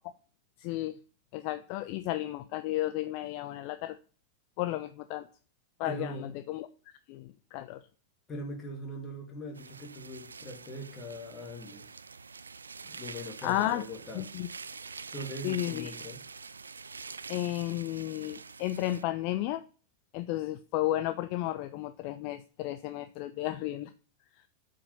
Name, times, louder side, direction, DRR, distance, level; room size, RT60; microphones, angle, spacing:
voice 1, 0.6-1.0 1.3-4.0 4.6-5.3 5.8-6.7 7.1-7.8 13.4-13.8 14.1-14.5 15.4-15.9 17.3-19.6 20.1-23.9, left 15 dB, 45° left, 0.4 m, -33 dB
voice 2, 5.8-6.3 8.3-11.9 12.8-14.3 15.1-16.2, equal, 20° left, 2.4 m, -41 dB
sound 1, 9.6-19.0, right 5 dB, 75° right, 0.3 m, -46 dB
8.4 x 5.1 x 5.4 m
figure-of-eight pair, 90°, 0 cm